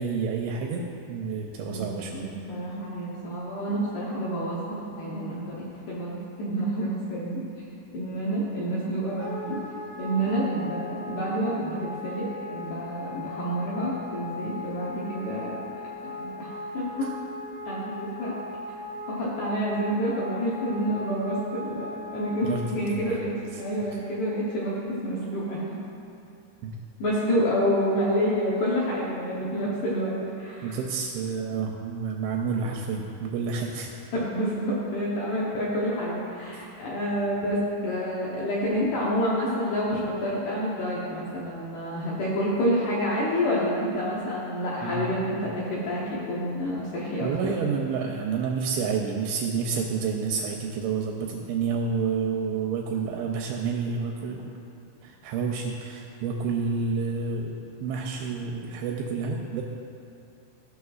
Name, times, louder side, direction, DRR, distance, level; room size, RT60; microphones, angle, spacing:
voice 1, 0.0-2.3 2.7-2.8 17.0-17.1 22.4-23.0 23.5-23.6 23.9-24.0 26.6-26.8 30.6-33.9 36.5-36.7 44.8-45.5 47.2-54.5 55.0-57.5 57.8-59.6, right 5 dB, 85° right, 0 dB, 2.7 m, -29 dB
voice 2, 1.7-7.4 7.9-9.6 10.0-12.3 12.5-15.6 16.2-17.1 17.7-18.3 19.1-22.5 22.8-23.3 23.6-25.7 27.0-30.1 30.4-30.8 34.1-47.5, equal, 75° left, -6 dB, 2.4 m, -28 dB
Wind instrument woodwind instrument, 9.2-22.7, left 2 dB, 55° left, 1.6 m, -38 dB
15.0 x 6.4 x 2.4 m, 2.6 s
omnidirectional pair, 5.6 m